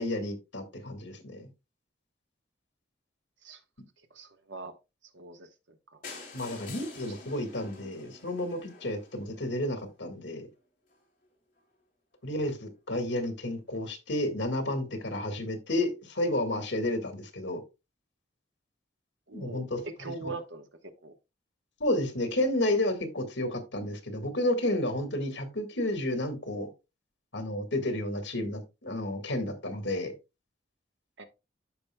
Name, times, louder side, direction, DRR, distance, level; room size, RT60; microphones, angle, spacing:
voice 1, 0.0-1.5 6.3-10.5 12.2-17.6 19.3-19.8 20.2-20.3 21.8-26.7 27.3-30.1, left 1 dB, 80° left, 1.8 m, -31 dB
voice 2, 4.1-4.8 5.1-6.0 19.3-21.1 31.2-31.3, right 3 dB, 85° right, 1.2 m, -42 dB
sound 1, 6.0-9.9 10.6-10.7 10.9-11.0 11.3-11.4 11.6-11.7, left 3 dB, 45° left, 3.4 m, -47 dB
13.5 x 5.2 x 2.2 m
head